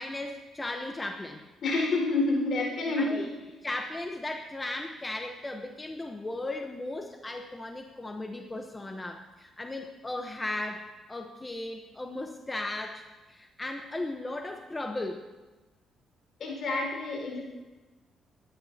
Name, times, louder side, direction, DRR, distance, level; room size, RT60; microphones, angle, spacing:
voice 1, 0.0-1.4 3.0-3.2 3.6-15.2, left 2 dB, 20° left, 4 dB, 0.9 m, -36 dB
voice 2, 1.6-3.3 16.4-17.4, left 2 dB, 60° left, 0 dB, 5.0 m, -28 dB
24.5 x 11.5 x 2.9 m, 1.2 s
cardioid pair, 90°, 0 cm